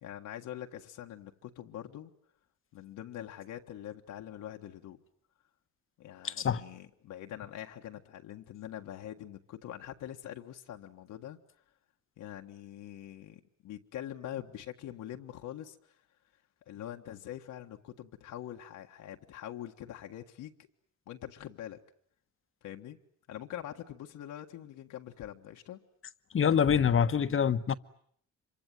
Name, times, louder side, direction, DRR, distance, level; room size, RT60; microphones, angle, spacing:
voice 1, 0.0-2.1 2.7-5.0 6.0-11.4 12.2-15.9 16.7-20.5 21.1-21.8 22.6-23.0 23.3-25.8, left 11 dB, 85° left, 1.7 m, -44 dB
voice 2, 6.2-6.6 26.3-27.7, left 7 dB, 45° left, 1.2 m, -25 dB
26.0 x 24.5 x 9.2 m
cardioid pair, 90°, 30 cm